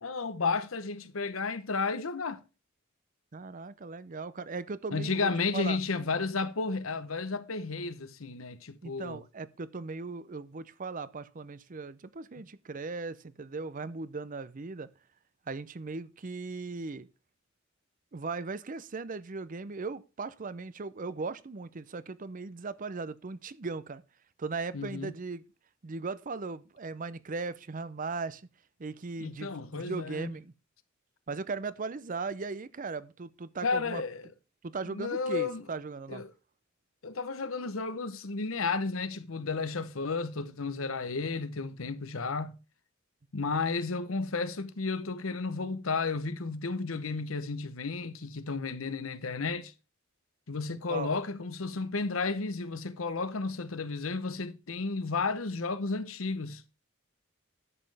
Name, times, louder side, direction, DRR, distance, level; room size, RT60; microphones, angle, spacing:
voice 1, 0.0-2.4 4.9-9.2 24.7-25.1 29.2-30.3 33.6-34.3 34.9-35.6 36.1-36.3 37.0-42.6 43.3-49.7 50.5-56.6, left 4 dB, 85° left, 0.9 m, -33 dB
voice 2, 3.3-5.8 8.8-14.9 15.5-17.1 18.1-24.0 24.4-25.4 25.8-28.4 28.8-30.5 31.3-34.0 34.6-36.2 50.9-51.1, right 4 dB, 40° right, 0.6 m, -38 dB
11.0 x 7.6 x 3.4 m
head